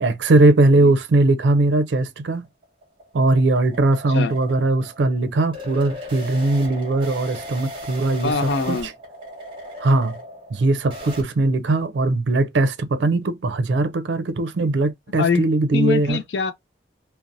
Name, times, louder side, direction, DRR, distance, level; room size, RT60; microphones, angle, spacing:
voice 1, 0.0-2.5 3.1-8.8 9.8-10.2 10.5-16.2, right 2 dB, 85° right, 0.4 m, -20 dB
sound 1, 2.3-11.2, equal, 30° right, 1.0 m, -37 dB
voice 2, 8.2-8.9 15.2-15.4 15.7-16.5, left 5 dB, 80° left, 0.4 m, -23 dB
2.6 x 2.0 x 2.5 m
head